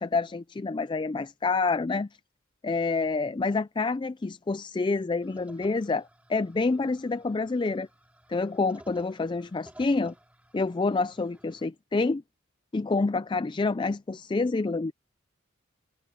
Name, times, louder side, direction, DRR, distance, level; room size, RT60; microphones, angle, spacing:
voice 1, 0.0-2.1 2.6-7.9 8.3-10.1 10.5-12.2 12.7-14.9, left 3 dB, 25° left, 0.3 m, -28 dB
sound 1, 5.2-11.7, right 1 dB, 5° right, 3.1 m, -55 dB
head